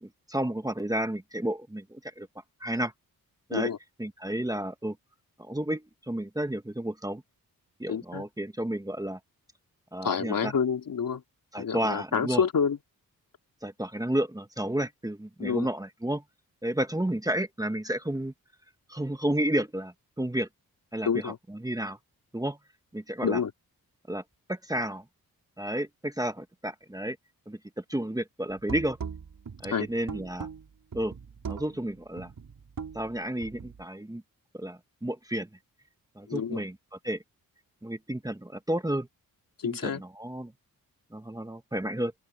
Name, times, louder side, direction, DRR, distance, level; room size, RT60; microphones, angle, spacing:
voice 1, 0.0-2.3 2.6-2.9 3.5-3.7 4.0-5.0 5.4-7.2 7.8-9.2 9.9-10.5 11.5-12.4 13.6-16.2 16.6-18.3 18.9-20.5 20.9-22.0 22.3-22.6 22.9-23.4 24.1-24.2 24.5-25.0 25.6-27.2 27.5-29.0 29.6-30.5 30.9-31.1 31.5-32.3 32.9-34.2 34.5-35.5 36.1-36.8 37.0-37.2 37.8-39.1 39.6-40.5 41.1-42.1, right 1 dB, 10° right, 1.5 m, -31 dB
voice 2, 7.9-8.2 10.0-11.2 11.6-12.8 15.4-15.7 21.0-21.4 23.2-23.5 29.7-29.9 36.3-36.6 39.6-40.0, left 6 dB, 65° left, 3.0 m, -28 dB
sound 1, 28.5-33.8, right 6 dB, 60° right, 5.5 m, -40 dB
open air
cardioid pair, 70°, 36 cm